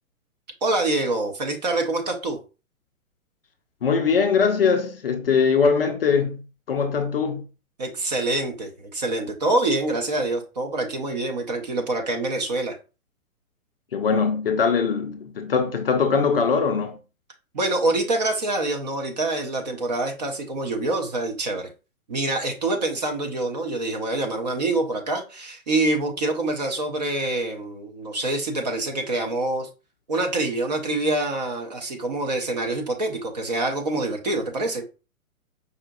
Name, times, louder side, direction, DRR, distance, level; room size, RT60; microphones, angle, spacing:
voice 1, 0.6-2.4 7.8-12.8 17.5-21.7 22.1-29.7 30.1-34.8, right 2 dB, 30° right, 0.5 m, -26 dB
voice 2, 3.8-7.4 13.9-17.0, left 5 dB, 45° left, 0.4 m, -21 dB
4.9 x 2.5 x 2.2 m
figure-of-eight pair, 125°, 43 cm